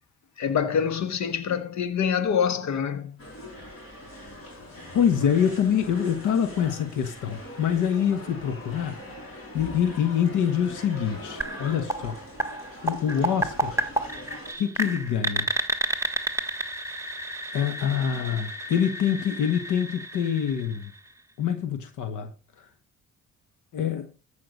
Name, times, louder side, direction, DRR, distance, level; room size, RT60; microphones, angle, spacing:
voice 1, 0.4-3.2, left 7 dB, 65° left, 1.3 m, -25 dB
sound 1, 3.2-14.5, left 1 dB, 45° left, 5.5 m, -42 dB
voice 2, 4.9-9.0 9.5-12.2 12.8-13.8 14.6-15.5 17.5-20.9 21.4-22.3 22.6-22.7 23.7-24.1, left 8 dB, 85° left, 1.2 m, -25 dB
sound 2, 11.4-21.2, right 1 dB, 10° right, 1.3 m, -31 dB
14.5 x 5.7 x 5.3 m
cardioid pair, 90°, 30 cm